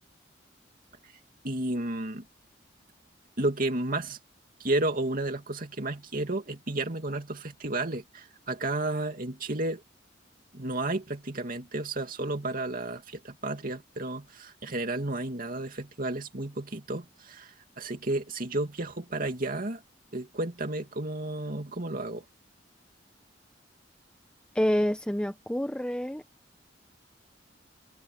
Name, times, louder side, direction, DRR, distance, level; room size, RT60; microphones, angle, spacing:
voice 1, 1.4-2.2 3.4-4.2 4.6-9.8 10.5-19.8 20.1-22.2, right 2 dB, 50° right, 2.6 m, -32 dB
voice 2, 24.5-26.2, equal, 5° left, 1.0 m, -27 dB
head